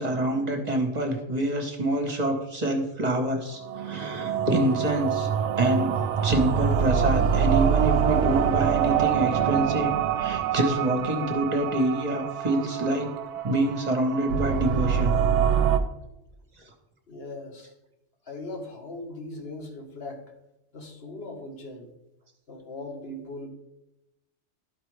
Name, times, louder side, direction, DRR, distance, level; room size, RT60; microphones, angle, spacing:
voice 1, 0.0-5.3 5.6-6.0 6.2-9.9 10.2-13.1 13.4-15.2, right 1 dB, 35° right, 4 dB, 1.1 m, -26 dB
sound 1, 3.5-15.8, right 8 dB, 75° right, 0.9 m, -25 dB
voice 2, 17.1-17.7 18.2-20.2 20.7-21.9 22.5-23.5, left 2 dB, 55° left, 2 dB, 1.5 m, -39 dB
12.0 x 4.8 x 3.2 m, 0.88 s
omnidirectional pair, 1.2 m